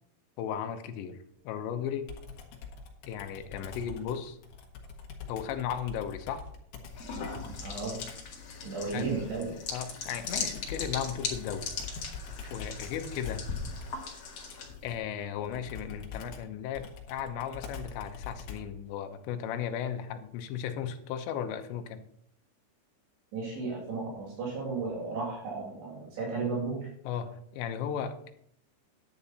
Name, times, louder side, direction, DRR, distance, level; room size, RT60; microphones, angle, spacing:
voice 1, 0.4-1.2 1.4-2.1 3.1-4.4 5.3-6.4 8.9-9.1 9.7-11.7 12.5-13.5 14.8-22.0 27.0-28.3, left 8 dB, 80° left, 7 dB, 3.1 m, -35 dB
Computer keyboard, 2.1-8.3 10.2-18.8, left 5 dB, 60° left, 3.1 m, -44 dB
sound 1, 6.9-15.0, left 4 dB, 45° left, 2.3 m, -39 dB
voice 2, 7.6-8.0 8.6-9.5 23.3-26.9, right 4 dB, 70° right, -2 dB, 4.6 m, -34 dB
10.5 x 9.9 x 4.2 m, 0.68 s
omnidirectional pair, 5.3 m